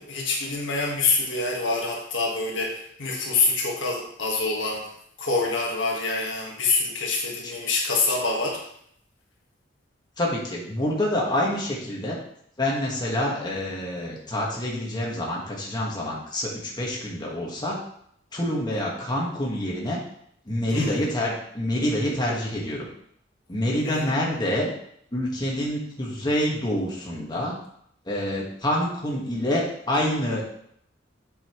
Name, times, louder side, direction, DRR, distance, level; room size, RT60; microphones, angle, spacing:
voice 1, 0.0-4.9 5.2-8.6 20.7-21.0 23.8-24.2, left 3 dB, 75° left, -1 dB, 1.6 m, -26 dB
voice 2, 7.4-8.4 10.2-12.2 12.6-17.8 18.3-20.0 20.5-22.8 23.5-24.7 25.1-27.5 28.0-30.5, left 1 dB, 25° left, -3 dB, 1.6 m, -27 dB
7.7 x 5.6 x 3.1 m, 0.68 s
head